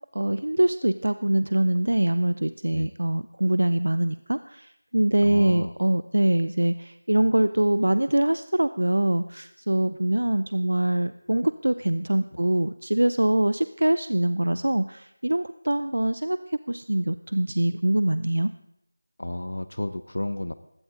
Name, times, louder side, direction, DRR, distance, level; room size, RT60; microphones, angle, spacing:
voice 1, 0.1-18.5, right 1 dB, 80° right, 13 dB, 0.6 m, -24 dB
voice 2, 5.2-5.7 19.2-20.5, left 1 dB, 75° left, 12 dB, 0.8 m, -32 dB
20.5 x 16.0 x 3.7 m, 0.79 s
figure-of-eight pair, 170°, 0 cm